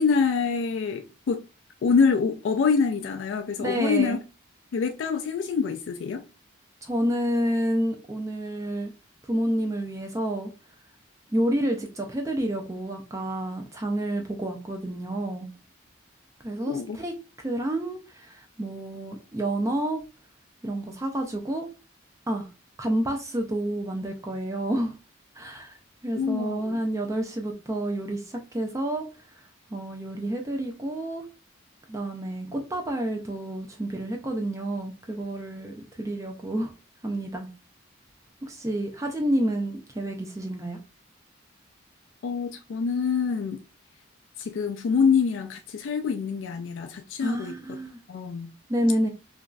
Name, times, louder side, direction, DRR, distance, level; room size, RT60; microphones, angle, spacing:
voice 1, 0.0-1.4 1.8-4.2 4.7-6.2 16.7-17.0 26.1-26.8 42.2-43.6 44.4-47.8 48.1-48.5, left 5 dB, 75° left, 0.3 m, -25 dB
voice 2, 3.6-4.2 6.8-8.9 9.3-10.5 11.3-15.5 16.4-20.0 20.6-21.7 22.3-22.5 22.8-24.9 25.4-25.8 26.0-29.1 29.4-29.5 29.7-31.3 31.9-36.7 37.0-37.5 38.4-40.8 47.2-48.0 48.7-49.1, right 1 dB, 15° right, 0.3 m, -29 dB
3.0 x 2.5 x 2.2 m
head